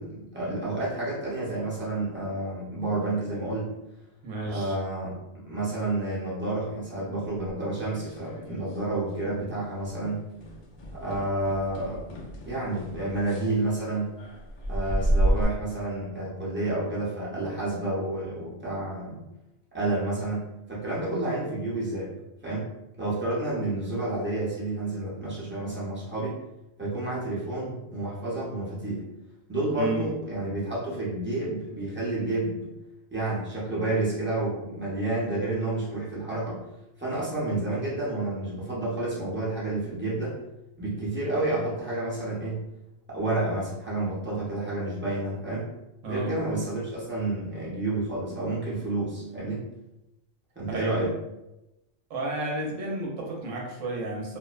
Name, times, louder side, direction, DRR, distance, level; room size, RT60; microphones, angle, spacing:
voice 1, 0.0-3.7 4.5-5.1 5.4-10.2 10.9-12.2 12.4-14.1 14.7-19.2 19.7-22.1 22.4-22.7 23.0-26.4 26.8-29.1 29.5-32.7 33.1-36.6 37.0-40.4 40.8-42.6 43.1-45.7 46.1-49.7 50.5-51.1, right 2 dB, 15° right, -7 dB, 0.4 m, -30 dB
voice 2, 4.2-4.7 29.8-30.1 46.0-46.3 50.7-51.0 52.1-54.4, right 2 dB, 75° right, -1 dB, 1.0 m, -32 dB
sound 1, 7.4-8.8 9.1-9.5 9.8-10.0 10.4-15.4, right 1 dB, 85° left, 0.4 m, -31 dB
2.5 x 2.0 x 2.3 m, 0.92 s
omnidirectional pair, 1.4 m